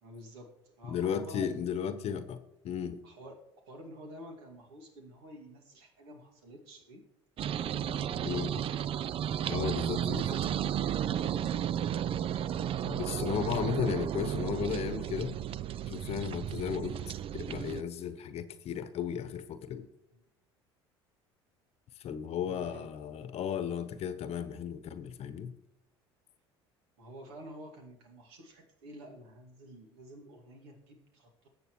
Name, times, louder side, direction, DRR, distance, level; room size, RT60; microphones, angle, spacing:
voice 1, 0.0-1.5 3.0-3.4 3.7-7.0 7.6-8.3 11.2-11.6 20.1-20.2 22.4-22.9 27.0-31.5, equal, 70° right, 2 dB, 2.3 m, -49 dB
voice 2, 0.9-2.4 2.6-3.0 8.2-8.5 9.5-10.4 12.8-15.3 15.9-17.0 17.3-19.9 22.0-25.5, left 8 dB, 50° left, 12 dB, 1.0 m, -34 dB
sound 1, 7.4-17.8, right 10 dB, 40° right, 0.4 m, -33 dB
20.0 x 8.0 x 3.1 m, 0.83 s
hypercardioid pair, 65°, 14 cm